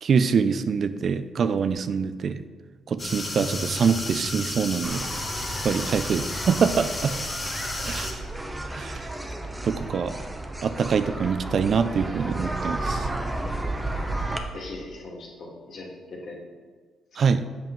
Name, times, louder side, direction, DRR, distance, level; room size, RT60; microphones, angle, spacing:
voice 1, 0.0-2.4 2.9-5.1 5.6-7.1 7.8-8.1 8.7-9.1 9.6-10.1 10.6-13.1 17.2-17.5, right 6 dB, 55° right, 11 dB, 0.4 m, -24 dB
sound 1, 3.0-8.1, left 2 dB, 30° left, 1.2 m, -32 dB
sound 2, 4.8-14.4, right 2 dB, 10° right, 0.7 m, -33 dB
voice 2, 14.5-16.4 17.2-17.3, left 2 dB, 65° left, -2 dB, 2.0 m, -40 dB
7.8 x 5.5 x 4.5 m, 1.5 s
cardioid pair, 90°, 0 cm